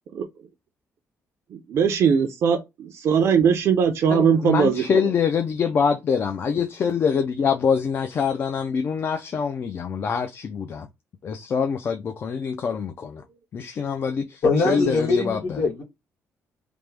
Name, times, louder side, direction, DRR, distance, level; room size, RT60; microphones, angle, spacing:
voice 1, 1.5-5.0 14.6-14.7, right 7 dB, 55° right, 0.5 m, -20 dB
voice 2, 4.1-10.9 11.2-13.2 13.5-15.6, left 6 dB, 40° left, 0.3 m, -25 dB
voice 3, 14.4-15.8, left 3 dB, 75° left, 1.8 m, -22 dB
3.3 x 2.0 x 3.2 m
cardioid pair, 135°, 6 cm